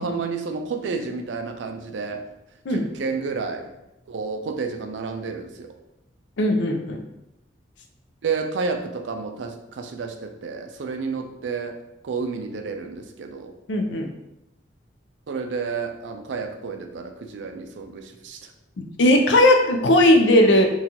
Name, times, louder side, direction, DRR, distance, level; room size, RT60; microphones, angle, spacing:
voice 1, 0.0-2.2 2.7-3.7 4.1-5.8 8.2-11.8 12.0-13.5 15.3-18.5, right 4 dB, 85° right, 6 dB, 0.4 m, -30 dB
voice 2, 6.4-7.0 13.7-14.1 18.8-20.7, left 1 dB, 85° left, 4 dB, 0.5 m, -18 dB
3.9 x 2.4 x 2.8 m, 0.89 s
head